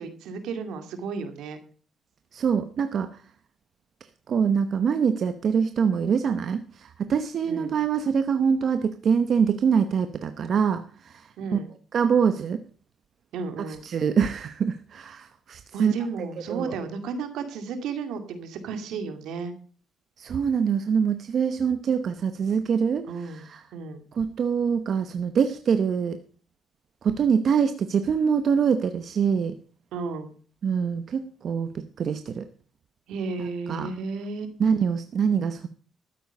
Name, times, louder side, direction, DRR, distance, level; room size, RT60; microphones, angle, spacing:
voice 1, 0.0-1.6 7.4-7.8 11.4-11.7 13.3-13.8 15.7-19.5 23.1-24.0 29.9-30.3 33.1-34.6, right 4 dB, 85° right, 8 dB, 2.3 m, -33 dB
voice 2, 2.3-3.2 4.3-11.6 11.9-12.6 13.7-15.9 16.5-16.7 20.2-23.6 24.1-26.2 27.0-29.6 30.6-32.5 33.4-33.9 34.6-35.7, right 6 dB, 60° right, 9 dB, 1.0 m, -24 dB
13.0 x 9.2 x 5.4 m, 0.42 s
cardioid pair, 90°, 0 cm